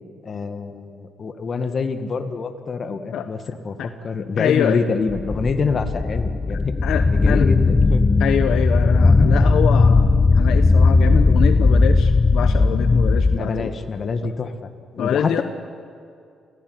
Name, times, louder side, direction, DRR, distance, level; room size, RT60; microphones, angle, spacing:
voice 1, 0.2-6.7 7.1-8.0 13.3-14.5 14.9-15.4, left 4 dB, 45° left, 8 dB, 2.0 m, -26 dB
voice 2, 4.4-4.8 6.8-7.5 8.2-13.7 15.0-15.4, left 9 dB, 75° left, 8 dB, 1.1 m, -25 dB
sound 1, 5.1-13.4, left 3 dB, 25° left, 1.0 m, -17 dB
28.0 x 17.5 x 9.7 m, 2.3 s
cardioid pair, 90°, 0 cm